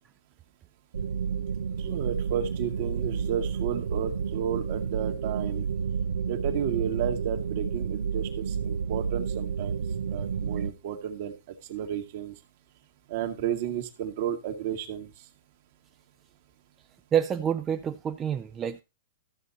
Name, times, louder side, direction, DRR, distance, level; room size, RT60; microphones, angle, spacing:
sound 1, 0.9-10.7, right 6 dB, 85° right, 0.7 m, -30 dB
voice 1, 1.8-5.7 6.3-9.8 10.1-12.4 13.1-15.1, right 9 dB, 60° right, 1.8 m, -32 dB
voice 2, 17.1-18.8, right 8 dB, 25° right, 0.5 m, -27 dB
13.5 x 6.7 x 4.1 m
hypercardioid pair, 125°, 0 cm